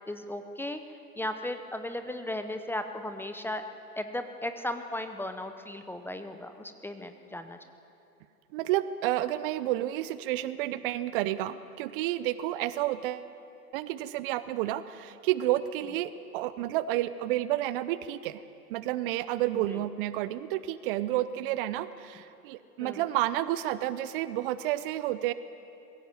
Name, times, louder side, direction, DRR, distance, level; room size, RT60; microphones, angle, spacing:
voice 1, 0.1-0.8 1.1-3.6 4.0-7.6 19.7-19.8 22.8-23.0, left 1 dB, 5° left, 8 dB, 0.6 m, -36 dB
voice 2, 8.5-13.3 13.7-18.4 18.7-25.3, right 14 dB, 35° right, 15 dB, 0.6 m, -30 dB
22.5 x 16.0 x 7.6 m, 2.7 s
hypercardioid pair, 110°, 46 cm